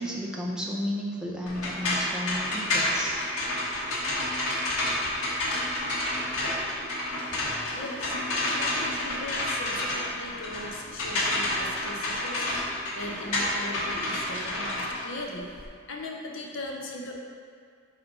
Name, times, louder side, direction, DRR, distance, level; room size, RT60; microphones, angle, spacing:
voice 1, 0.0-3.3, equal, 5° right, -3 dB, 0.5 m, -33 dB
sound 1, 1.5-15.7, left 1 dB, 85° left, 1.3 m, -29 dB
voice 2, 7.6-8.1 8.5-15.6 15.9-17.1, left 2 dB, 60° left, 0 dB, 0.7 m, -39 dB
4.2 x 4.1 x 5.3 m, 2.1 s
head